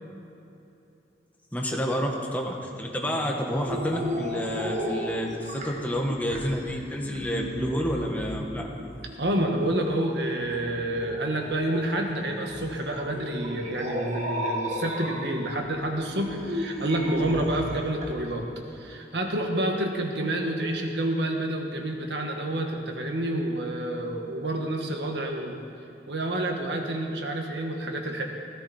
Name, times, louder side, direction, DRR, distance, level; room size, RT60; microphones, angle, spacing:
voice 1, 1.5-8.7, equal, 10° left, 0 dB, 1.4 m, -29 dB
sound 1, 3.5-18.1, equal, 40° right, 1.5 m, -35 dB
voice 2, 9.2-18.5 18.7-25.6 26.1-28.2, right 1 dB, 75° right, 2 dB, 1.7 m, -28 dB
16.0 x 15.5 x 4.4 m, 2.9 s
head